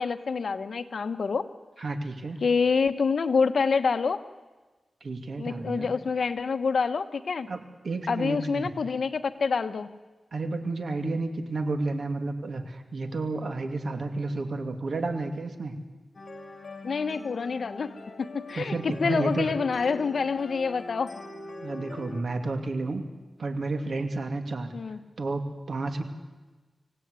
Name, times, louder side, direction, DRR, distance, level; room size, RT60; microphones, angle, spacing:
voice 1, 0.0-1.5 2.4-4.2 5.4-7.5 8.1-9.9 16.8-21.1 24.7-25.0, left 5 dB, 70° left, 9 dB, 1.3 m, -27 dB
voice 2, 1.8-2.4 5.0-5.9 7.5-8.7 10.3-15.8 18.5-19.5 21.6-23.0 23.4-24.7 25.2-26.0, right 3 dB, 70° right, 6 dB, 2.6 m, -31 dB
sound 1, 16.1-22.2, left 3 dB, 45° left, 3.1 m, -42 dB
25.5 x 17.0 x 9.7 m, 1.3 s
wide cardioid pair, 125°, 0 cm